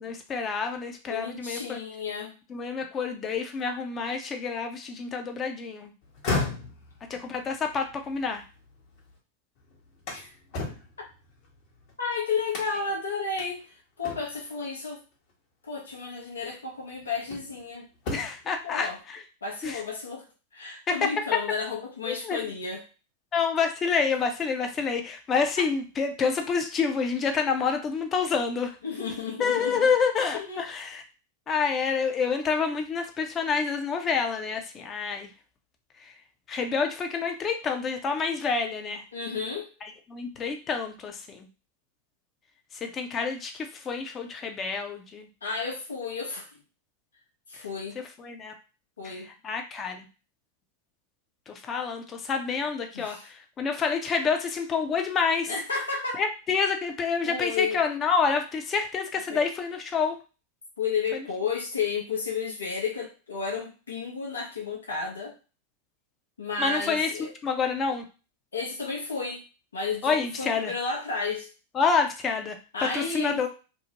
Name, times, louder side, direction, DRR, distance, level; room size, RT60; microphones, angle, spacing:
voice 1, 0.0-1.8 2.5-5.9 7.1-8.4 18.1-19.2 19.6-19.8 20.9-21.0 22.1-22.5 23.3-28.7 29.4-31.0 31.5-35.3 36.0-36.1 36.5-39.0 39.8-41.5 42.8-45.3 48.2-48.5 49.0-50.1 51.5-55.5 56.1-60.2 61.1-61.3 66.6-67.1 67.4-68.0 70.0-70.7 71.7-72.6 72.9-73.5, left 5 dB, 30° left, 5 dB, 0.6 m, -28 dB
voice 2, 1.1-2.3 10.1-10.3 12.0-13.7 14.0-15.0 15.7-17.9 18.6-19.0 19.4-20.2 20.5-22.8 28.8-29.9 30.3-30.6 39.1-39.7 45.4-46.5 47.5-48.0 49.0-49.3 52.9-53.2 55.5-56.2 57.2-57.8 59.3-59.4 60.8-65.3 66.4-67.3 68.5-69.4 69.7-71.5 72.7-73.4, left 5 dB, 80° left, -1 dB, 0.8 m, -32 dB
sound 1, 6.0-9.2 9.6-11.9 12.5-13.0 13.4-13.5 14.0-14.5 15.8-15.9 16.5-17.6 17.9-18.5, left 3 dB, 50° left, 1.0 m, -35 dB
2.6 x 2.1 x 2.9 m, 0.33 s
hypercardioid pair, 100°, 0 cm